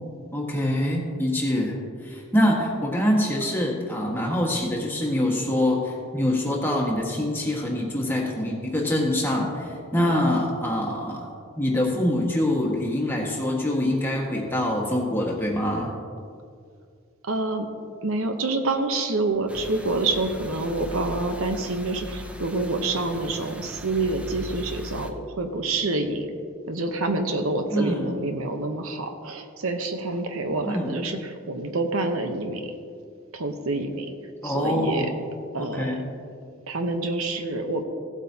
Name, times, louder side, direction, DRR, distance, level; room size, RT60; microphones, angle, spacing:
voice 1, 0.3-11.3 11.6-15.9 27.7-28.1 30.6-31.0 34.4-35.1 35.6-36.0, left 1 dB, 10° left, -2 dB, 1.5 m, -25 dB
voice 2, 17.2-17.7 18.0-26.3 26.7-32.8 33.3-34.1 34.4-35.1 35.5-36.0 36.7-37.8, right 2 dB, 70° right, 6 dB, 0.9 m, -27 dB
sound 1, 19.5-25.1, equal, 5° right, 0.5 m, -39 dB
16.5 x 8.2 x 2.8 m, 2.3 s
head